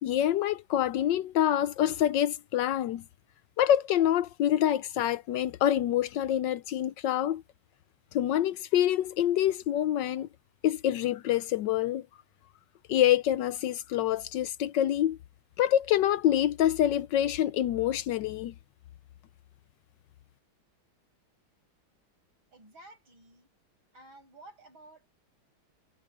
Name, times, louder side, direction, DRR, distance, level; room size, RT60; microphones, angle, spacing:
voice 1, 0.0-3.0 3.6-7.4 8.1-10.3 10.6-12.1 12.9-15.2 15.6-18.5, left 11 dB, 70° left, 1.2 m, -26 dB
voice 2, 22.5-23.5 23.9-25.1, right 2 dB, 80° right, 7.8 m, -53 dB
omnidirectional pair, 2.2 m